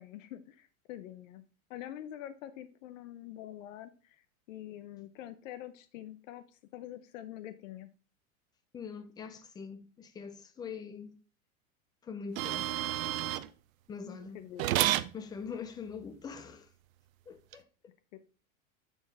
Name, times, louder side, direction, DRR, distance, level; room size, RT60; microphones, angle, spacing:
voice 1, 0.0-1.4 1.7-6.4 6.7-7.9 14.0-14.7 18.1-18.2, left 12 dB, 65° left, 0.8 m, -46 dB
voice 2, 8.7-11.2 12.0-12.7 13.9-14.4 15.1-16.7 17.3-17.7, left 6 dB, 10° left, 0.3 m, -43 dB
sound 1, 12.4-13.5 14.6-15.1 17.5-17.6, right 14 dB, 75° right, 0.6 m, -30 dB
7.7 x 4.5 x 3.3 m
hypercardioid pair, 120°, 42 cm